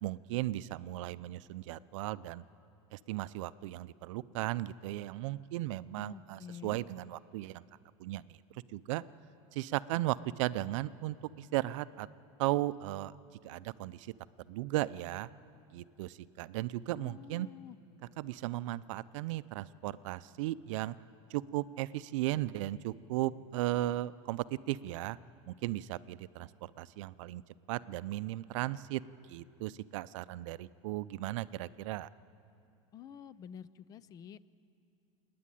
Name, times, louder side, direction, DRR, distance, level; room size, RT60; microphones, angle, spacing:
voice 1, 0.0-2.4 2.9-7.6 8.0-9.0 9.5-12.1 12.4-13.1 13.4-14.1 14.5-15.3 15.7-17.5 18.2-20.9 21.3-25.2 25.5-27.4 27.7-29.0 29.3-32.1, right 16 dB, 75° right, 17 dB, 0.5 m, -36 dB
voice 2, 6.0-6.8 16.9-17.8 32.9-34.4, left 8 dB, 25° left, 18 dB, 0.4 m, -49 dB
28.5 x 9.5 x 9.9 m, 2.6 s
supercardioid pair, 160°, 16 cm